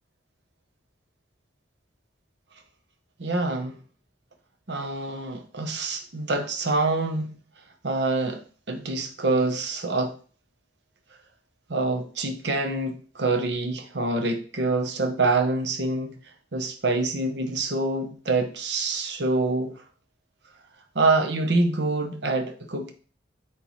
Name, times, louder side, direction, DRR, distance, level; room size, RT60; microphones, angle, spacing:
voice 1, 3.2-3.8 4.7-7.3 7.8-8.4 8.7-10.1 11.7-16.1 16.5-19.8 20.9-22.9, right 3 dB, 65° right, 0.9 m, -26 dB
8.1 x 4.3 x 3.1 m
head